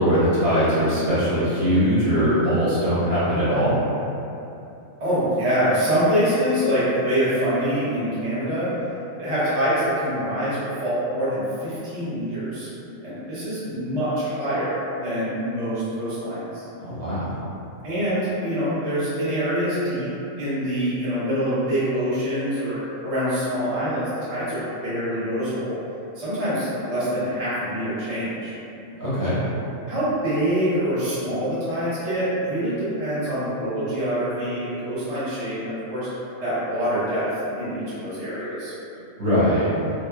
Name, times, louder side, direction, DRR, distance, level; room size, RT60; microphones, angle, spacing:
voice 1, 0.0-3.7 16.8-17.3 29.0-29.4 39.2-39.7, equal, 65° right, -13 dB, 1.6 m, -21 dB
voice 2, 5.0-8.7 9.2-12.7 13.0-16.6 17.8-20.1 20.4-22.8 23.0-25.8 26.1-28.5 29.9-36.1 36.4-37.3 37.6-38.7, equal, 35° right, -12 dB, 0.7 m, -25 dB
3.1 x 2.0 x 2.2 m, 2.8 s
omnidirectional pair, 1.4 m